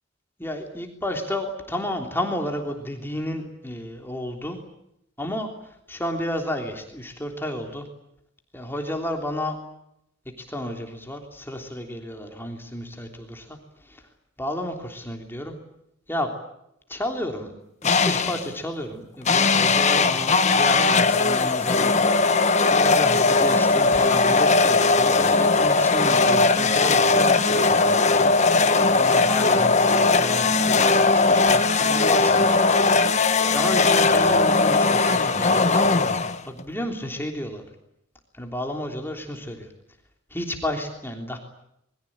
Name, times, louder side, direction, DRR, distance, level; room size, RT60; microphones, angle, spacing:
voice 1, 0.4-4.6 5.2-7.9 8.5-9.6 10.4-14.0 14.4-15.5 16.1-16.3 16.9-17.5 17.8-21.9 22.7-28.3 29.0-32.5 33.5-37.6 38.3-39.7 40.3-41.4, left 1 dB, 10° left, 3 dB, 3.3 m, -31 dB
sound 1, 17.8-18.5 19.3-36.6, left 3 dB, 35° left, 1.4 m, -19 dB
27.0 x 22.5 x 8.8 m, 0.78 s
head